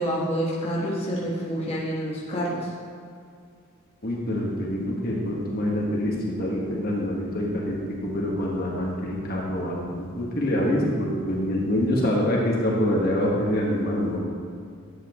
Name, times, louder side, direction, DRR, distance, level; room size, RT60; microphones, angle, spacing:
voice 1, 0.0-2.7, equal, 30° left, -6 dB, 1.3 m, -27 dB
voice 2, 4.0-14.2, left 1 dB, 45° left, -3 dB, 1.4 m, -25 dB
11.0 x 7.7 x 3.0 m, 2.3 s
head